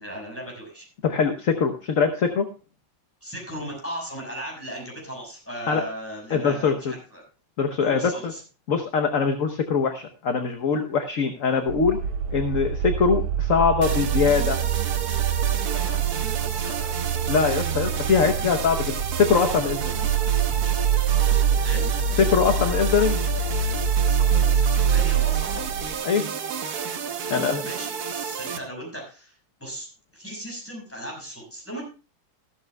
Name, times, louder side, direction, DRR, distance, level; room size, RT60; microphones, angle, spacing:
voice 1, 0.0-0.8 3.2-7.2 7.8-8.4 15.7-17.0 20.5-20.7 21.6-21.9 24.1-25.7 27.3-29.3 29.6-29.9 30.1-31.8, right 1 dB, 5° left, -1 dB, 5.8 m, -37 dB
voice 2, 1.0-2.5 5.7-5.8 6.3-6.9 7.6-8.3 8.7-12.0 12.3-14.6 17.3-20.0 22.2-23.2 26.0-26.2 27.3-27.6, left 5 dB, 50° left, 5 dB, 1.1 m, -22 dB
sound 1, 11.7-25.9, right 7 dB, 85° right, 1.6 m, -25 dB
sound 2, 13.8-28.6, right 7 dB, 55° right, 1.4 m, -31 dB
14.5 x 13.0 x 2.3 m, 0.33 s
omnidirectional pair, 2.2 m